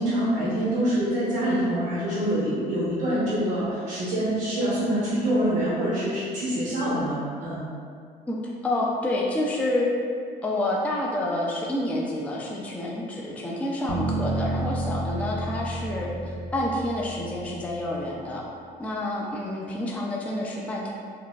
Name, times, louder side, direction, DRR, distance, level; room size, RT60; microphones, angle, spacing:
voice 1, 0.0-7.6, right 1 dB, 75° right, -9 dB, 0.9 m, -25 dB
voice 2, 8.6-9.9 10.4-18.4 18.8-20.9, left 1 dB, 10° left, -3 dB, 0.3 m, -28 dB
sound 1, 13.9-18.0, right 2 dB, 40° right, 0.6 m, -31 dB
3.9 x 2.2 x 2.4 m, 2.2 s
cardioid pair, 110°, 17 cm